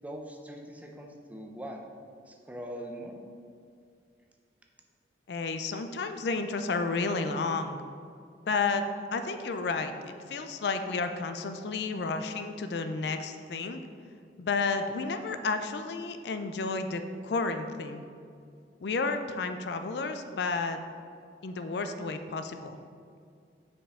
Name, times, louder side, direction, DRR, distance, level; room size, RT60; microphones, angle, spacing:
voice 1, 0.0-1.8 2.3-3.2, equal, 10° right, 1 dB, 0.5 m, -42 dB
voice 2, 5.3-7.8 8.5-8.8 9.1-13.8 14.4-18.0 18.8-20.8 21.4-22.8, left 4 dB, 65° left, 8 dB, 0.4 m, -31 dB
7.0 x 5.3 x 3.7 m, 2.3 s
head